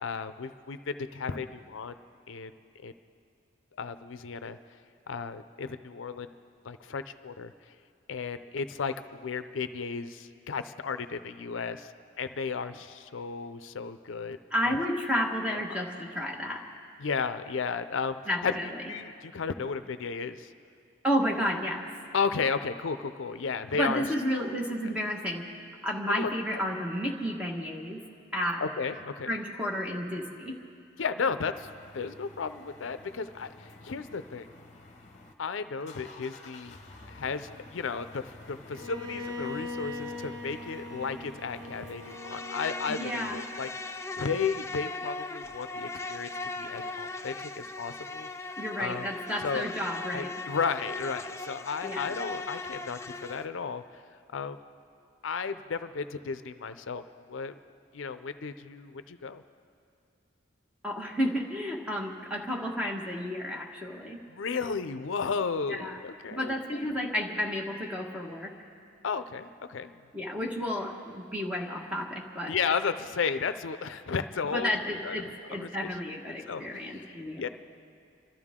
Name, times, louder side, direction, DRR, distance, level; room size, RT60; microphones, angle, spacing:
voice 1, 0.0-1.9 2.3-2.5 2.8-2.9 3.8-4.6 5.1-6.3 6.6-7.5 8.1-11.9 12.2-14.4 14.6-14.8 17.0-18.5 18.9-20.5 22.1-24.0 24.3-24.5 26.2-26.3 28.6-29.3 31.0-34.5 35.4-36.8 37.1-46.3 46.6-48.3 48.8-49.1 49.4-49.7 50.1-53.8 54.3-54.6 55.2-57.0 57.3-57.6 57.9-59.4 64.3-66.8 69.0-70.0 72.5-74.7 75.0-75.9 76.5-77.5, left 5 dB, 80° left, 11 dB, 0.5 m, -34 dB
voice 2, 14.5-16.7 18.3-18.8 21.0-21.8 23.7-25.4 25.8-28.0 28.3-28.6 29.3-30.6 42.9-43.4 48.6-50.3 51.8-52.0 60.8-64.2 65.7-66.0 66.3-68.5 70.1-72.6 74.5-77.4, equal, 5° right, -1 dB, 1.5 m, -31 dB
sound 1, 31.5-35.3 35.6-42.2, left 2 dB, 35° left, 1.1 m, -50 dB
Bowed string instrument, 38.7-43.7, left 2 dB, 60° right, 0.9 m, -41 dB
Insect, 42.0-53.5, left 3 dB, 15° left, 0.4 m, -38 dB
27.5 x 13.0 x 3.7 m, 2.5 s
head